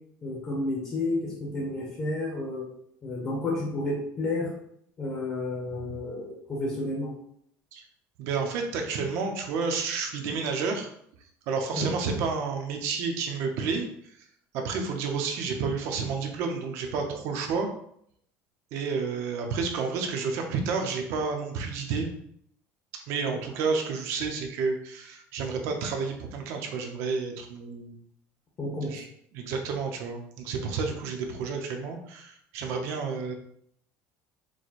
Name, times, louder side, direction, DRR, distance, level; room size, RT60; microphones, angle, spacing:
voice 1, 0.2-2.7 3.0-4.5 5.0-7.1 11.7-11.9 28.6-29.0, left 2 dB, 25° left, -4 dB, 1.0 m, -31 dB
voice 2, 8.2-10.9 11.5-13.9 14.5-17.7 18.7-22.1 23.1-27.9 28.9-29.1 29.3-33.3, right 5 dB, 60° right, 3 dB, 0.8 m, -30 dB
4.7 x 2.2 x 4.1 m, 0.69 s
cardioid pair, 175°, 5 cm